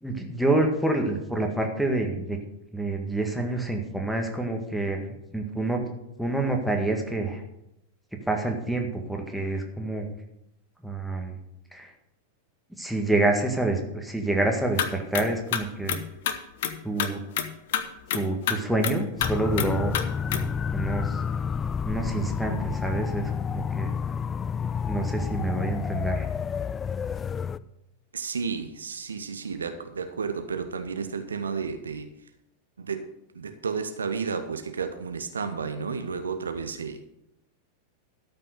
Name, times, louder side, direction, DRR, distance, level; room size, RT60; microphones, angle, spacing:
voice 1, 0.0-2.4 2.7-5.8 6.2-7.4 8.3-10.1 10.8-11.4 11.7-11.9 12.8-16.0 16.8-17.2 18.1-21.2 21.8-23.9 24.8-26.3, right 2 dB, ahead, 2 dB, 1.8 m, -27 dB
sound 1, 14.8-14.9 15.1-15.3 15.5-16.4 16.6-16.7 17.0-17.1 17.4-17.5 17.7-17.8 18.1-18.2 18.5-18.6 18.8-19.3 19.6-19.7 19.9-20.0 20.3-20.4, left 9 dB, 55° left, 0.9 m, -26 dB
sound 2, 19.2-27.6, left 7 dB, 20° left, 0.3 m, -29 dB
voice 2, 28.1-32.1 32.8-33.1 33.3-37.0, right 5 dB, 70° right, 8 dB, 0.8 m, -32 dB
13.0 x 5.9 x 6.6 m, 0.85 s
figure-of-eight pair, 90°, 0 cm